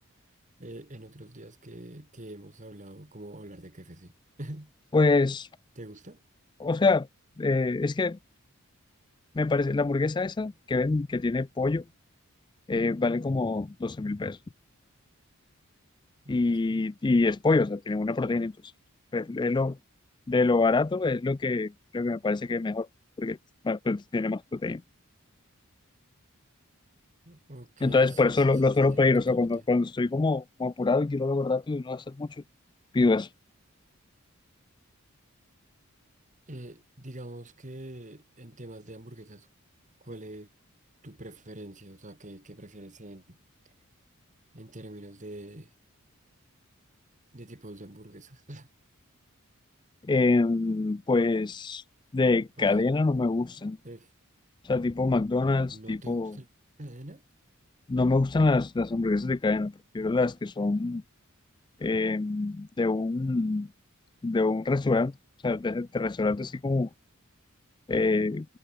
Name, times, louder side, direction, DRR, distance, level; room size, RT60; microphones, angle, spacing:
voice 1, 0.6-4.1 4.4-4.7 5.8-6.2 16.2-16.9 27.2-28.5 28.8-29.7 36.5-39.5 40.0-40.5 41.0-43.4 44.5-45.7 47.3-48.7 52.6-52.9 53.8-54.1 55.7-56.5 56.8-57.2, right 1 dB, 35° right, 2.3 m, -45 dB
voice 2, 4.9-5.5 6.6-7.1 7.4-8.2 9.3-11.8 12.7-14.4 16.3-18.5 19.1-19.8 20.3-22.9 23.2-23.4 23.6-24.8 27.8-32.3 32.9-33.3 50.0-51.8 52.1-53.8 54.7-56.4 57.9-61.0 61.8-63.7 64.2-65.1 65.4-66.9 67.9-68.5, left 3 dB, 20° left, 0.3 m, -25 dB
head